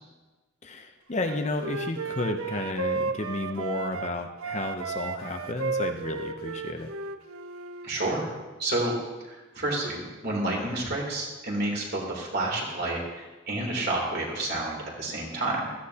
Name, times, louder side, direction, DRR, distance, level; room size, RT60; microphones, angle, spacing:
voice 1, 0.6-6.9, left 2 dB, 35° left, 5 dB, 0.7 m, -32 dB
Wind instrument woodwind instrument, 1.2-4.1 4.4-7.9, right 4 dB, 90° right, 0.6 m, -33 dB
voice 2, 7.8-8.3 8.6-9.0 9.2-15.7, right 2 dB, 50° right, -2 dB, 3.2 m, -30 dB
16.0 x 14.0 x 2.9 m, 1.2 s
head